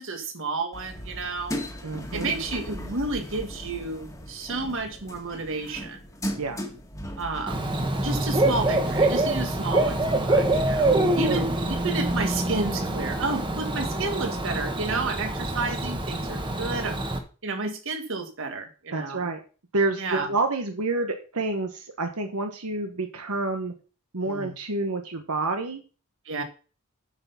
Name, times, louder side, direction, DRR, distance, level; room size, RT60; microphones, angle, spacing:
voice 1, 0.0-1.6 2.1-6.0 7.2-7.6 8.0-17.0 17.4-19.3 20.0-20.3 24.2-24.5 26.3-26.4, right 3 dB, 60° right, 6 dB, 1.8 m, -31 dB
sound 1, 0.7-15.5, equal, 15° left, 1.6 m, -40 dB
voice 2, 1.8-2.3 6.4-6.6 11.2-11.4 18.9-19.4 19.7-23.7 24.1-25.8, right 3 dB, 85° right, 5 dB, 1.2 m, -28 dB
Bird / Cricket, 7.5-17.2, right 2 dB, 20° right, 1.3 m, -25 dB
8.9 x 5.9 x 5.6 m, 0.36 s
head